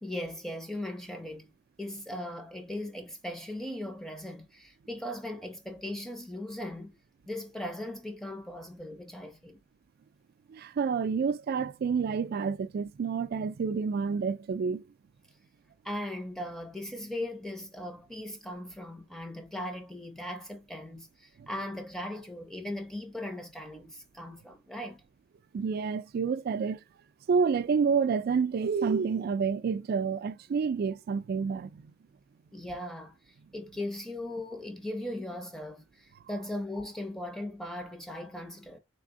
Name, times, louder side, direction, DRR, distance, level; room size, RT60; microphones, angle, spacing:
voice 1, 0.0-1.5 1.8-7.0 7.3-9.6 15.8-25.0 32.5-38.8, left 1 dB, 5° left, 0.5 m, -38 dB
voice 2, 10.5-14.8 21.4-21.5 25.5-26.8 27.3-31.9, right 5 dB, 50° right, 0.3 m, -29 dB
3.5 x 3.3 x 2.5 m
head